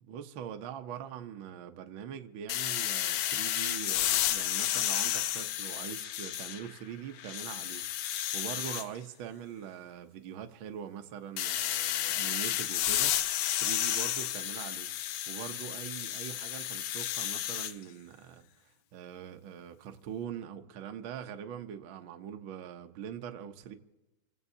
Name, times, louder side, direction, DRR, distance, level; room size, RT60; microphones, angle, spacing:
voice 1, 0.0-7.8 8.1-13.1 13.5-14.9 15.3-18.4 18.9-23.7, right 9 dB, 85° right, 1.1 m, -42 dB
sound 1, 2.5-6.8 7.2-8.9 11.4-17.7, left 12 dB, 90° left, 1.4 m, -32 dB
29.5 x 17.0 x 2.8 m
omnidirectional pair, 3.6 m